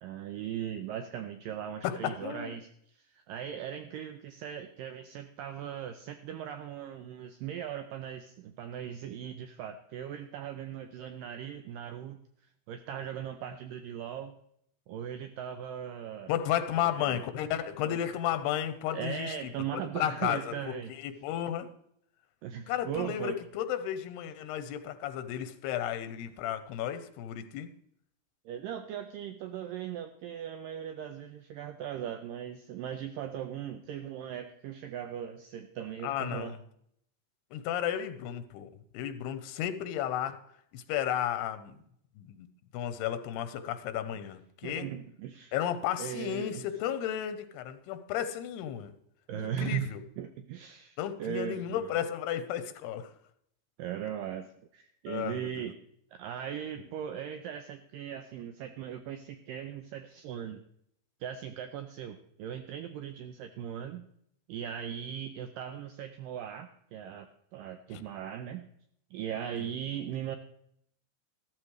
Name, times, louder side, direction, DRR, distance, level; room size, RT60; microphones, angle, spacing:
voice 1, 0.0-12.2 12.7-14.4 14.9-16.3 16.7-17.2 17.8-18.0 18.9-20.9 22.4-23.4 28.5-36.6 44.6-45.6 46.0-46.7 49.3-52.0 53.8-54.5 54.7-55.8 56.1-60.6 61.2-64.1 64.5-68.7 69.1-70.4, right 9 dB, 90° right, 8 dB, 1.9 m, -39 dB
voice 2, 1.8-2.6 16.3-21.7 22.7-27.7 36.0-36.6 37.5-40.4 40.7-41.8 42.2-42.5 42.7-44.9 45.5-48.9 49.3-50.0 51.0-53.1 55.1-55.7 67.9-68.0 69.6-69.7, left 10 dB, 85° left, 11 dB, 2.8 m, -33 dB
14.0 x 13.0 x 3.2 m, 0.69 s
omnidirectional pair, 4.7 m